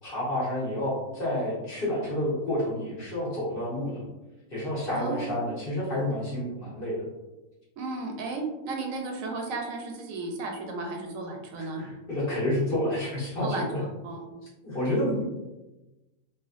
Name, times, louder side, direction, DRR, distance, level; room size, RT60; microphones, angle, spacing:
voice 1, 0.0-4.1 4.5-7.0 11.6-13.8 14.6-15.2, left 1 dB, 45° left, -7 dB, 1.1 m, -29 dB
voice 2, 4.9-5.3 7.8-11.8 13.4-14.3, right 3 dB, 80° right, 1 dB, 1.0 m, -34 dB
2.8 x 2.8 x 2.4 m, 1.1 s
omnidirectional pair, 1.4 m